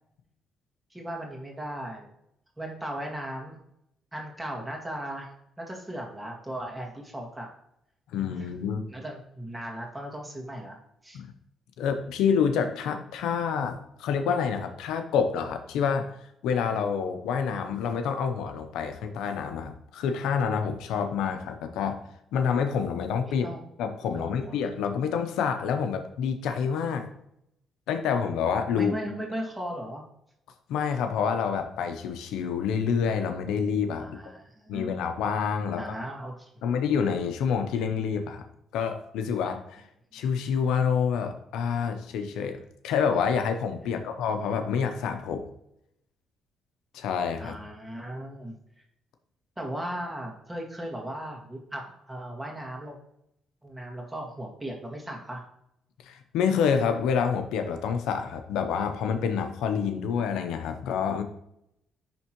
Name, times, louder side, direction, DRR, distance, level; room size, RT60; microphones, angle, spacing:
voice 1, 0.9-2.1 2.6-3.6 4.1-5.3 5.6-7.5 8.4-8.5 8.9-10.8 11.0-11.2 23.4-23.6 24.1-24.6 28.7-30.0 34.0-35.0 35.7-36.8 43.8-44.1 47.4-48.6 49.6-53.0 53.6-55.4, right 1 dB, 10° right, -1 dB, 1.9 m, -37 dB
voice 2, 8.1-8.8 11.1-11.3 11.8-16.1 16.4-22.0 22.3-23.5 23.8-27.0 27.9-28.9 30.7-34.1 34.7-35.9 36.6-38.4 38.7-39.8 40.1-45.4 46.9-47.6 56.0-61.2, left 6 dB, 85° left, 7 dB, 0.7 m, -27 dB
10.5 x 3.6 x 2.9 m, 0.79 s
cardioid pair, 90°, 0 cm